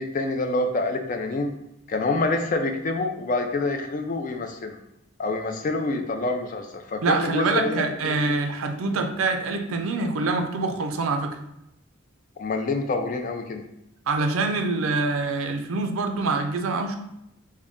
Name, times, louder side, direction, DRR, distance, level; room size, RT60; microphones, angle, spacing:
voice 1, 0.0-1.5 1.9-4.8 5.2-8.2 12.4-13.7, left 2 dB, 40° left, 5 dB, 0.4 m, -27 dB
voice 2, 7.0-11.4 14.1-17.0, right 3 dB, 90° right, 5 dB, 0.4 m, -25 dB
3.7 x 2.2 x 3.5 m, 0.85 s
head